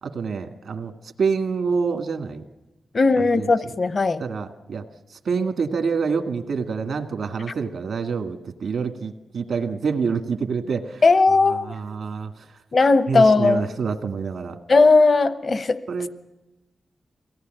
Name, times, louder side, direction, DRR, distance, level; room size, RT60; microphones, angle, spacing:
voice 1, 0.0-0.9 1.2-2.4 3.4-3.5 4.2-4.8 5.3-11.0 11.6-12.3 13.1-14.6 15.9-16.1, right 5 dB, 80° right, 6 dB, 1.8 m, -26 dB
voice 2, 2.9-4.2 11.0-11.7 12.7-13.6 14.7-15.8, left 3 dB, 50° left, 13 dB, 0.8 m, -17 dB
23.0 x 18.0 x 9.1 m, 1.1 s
wide cardioid pair, 95°, 0 cm